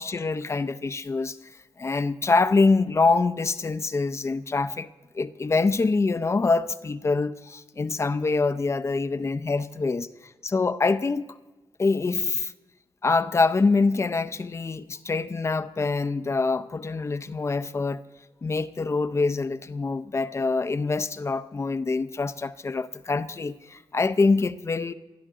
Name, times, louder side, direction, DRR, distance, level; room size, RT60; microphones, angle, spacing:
voice 1, 0.0-1.4 1.8-4.9 5.1-10.1 10.4-11.3 11.8-12.5 13.0-18.0 18.4-24.9, left 3 dB, 35° left, 0.5 m, -25 dB
20.0 x 12.5 x 3.8 m
wide cardioid pair, 105°, 9 cm